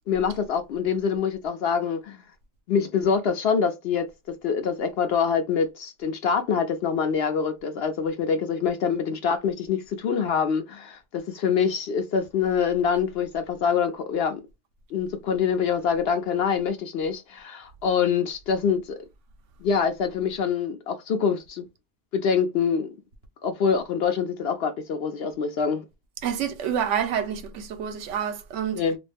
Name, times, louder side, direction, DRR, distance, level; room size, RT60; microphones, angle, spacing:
voice 1, 0.1-2.2 2.7-4.1 4.4-14.4 14.9-19.0 19.6-21.6 22.1-22.9 23.4-25.8 28.7-29.0, left 6 dB, 65° left, 0.7 m, -25 dB
voice 2, 26.2-28.8, right 8 dB, 75° right, 0.9 m, -28 dB
2.4 x 2.1 x 3.2 m
omnidirectional pair, 1.3 m